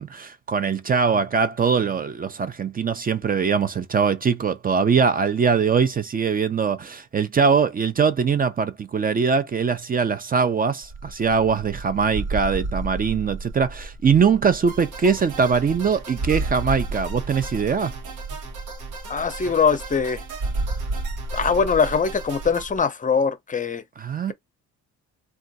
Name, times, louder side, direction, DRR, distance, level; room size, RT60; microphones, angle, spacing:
voice 1, 0.0-17.9 24.0-24.3, right 6 dB, 30° right, 0.4 m, -22 dB
sound 1, 10.8-22.8, right 2 dB, 60° right, 0.9 m, -32 dB
sound 2, 14.7-22.7, right 4 dB, 90° right, 1.0 m, -40 dB
voice 2, 19.1-20.2 21.3-23.8, left 6 dB, 25° left, 0.6 m, -22 dB
2.5 x 2.3 x 3.9 m
cardioid pair, 90°, 30 cm